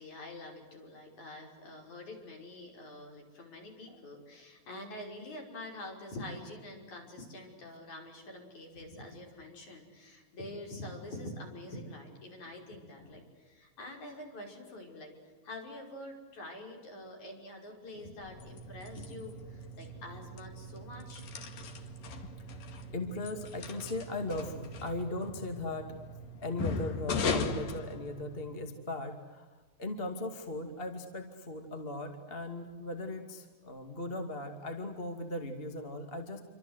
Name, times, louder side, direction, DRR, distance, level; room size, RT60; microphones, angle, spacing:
voice 1, 0.0-15.1 15.4-21.3, left 1 dB, 55° left, 1 dB, 6.9 m, -46 dB
sound 1, 18.2-28.6, left 3 dB, 75° left, 3.9 m, -39 dB
voice 2, 22.9-25.9 26.4-29.5 29.8-36.4, left 2 dB, 20° left, 5 dB, 2.1 m, -38 dB
29.0 x 25.5 x 8.1 m, 1.3 s
omnidirectional pair, 4.1 m